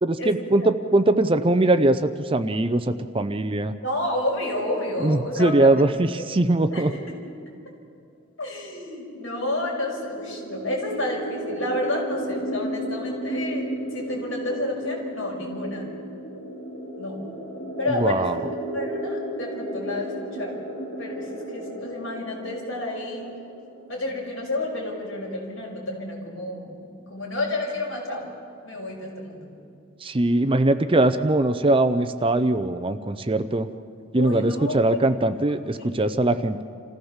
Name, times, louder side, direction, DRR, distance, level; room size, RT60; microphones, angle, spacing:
voice 1, 0.0-3.7 5.0-6.9 18.0-18.4 30.0-33.7 34.1-36.6, right 2 dB, 25° right, 11 dB, 0.6 m, -21 dB
voice 2, 3.8-5.7 6.7-7.2 8.4-15.8 17.0-17.3 17.8-18.3 18.7-20.6 21.0-23.3 23.9-28.3 28.6-29.5 34.1-35.1 35.7-36.2, left 1 dB, 70° left, -2 dB, 5.8 m, -30 dB
sound 1, 8.9-24.6, equal, 45° left, 3.7 m, -34 dB
28.0 x 15.0 x 7.3 m, 2.4 s
head